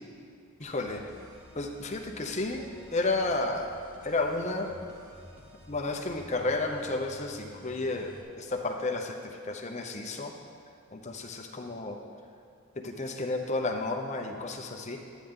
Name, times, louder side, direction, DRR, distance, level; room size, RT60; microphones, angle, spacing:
voice 1, 0.6-1.0 1.6-2.7 2.9-3.8 4.0-4.7 5.7-10.3 10.9-12.0 12.8-15.0, left 2 dB, 30° left, 3 dB, 0.7 m, -32 dB
sound 1, 0.6-8.2, equal, 75° right, 1.8 m, -52 dB
12.0 x 9.1 x 3.7 m, 2.4 s
head